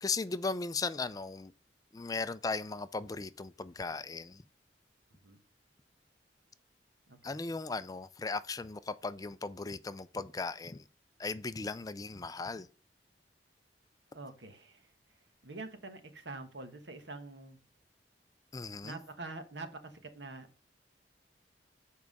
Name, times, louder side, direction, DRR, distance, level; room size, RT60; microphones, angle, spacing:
voice 1, 0.0-1.5 1.9-4.4 7.2-10.8 11.2-12.7 18.5-19.0, left 4 dB, 20° left, 0.4 m, -37 dB
voice 2, 14.1-14.8 15.4-17.6 18.8-20.5, right 3 dB, 80° right, 1.3 m, -45 dB
7.3 x 4.7 x 5.3 m
head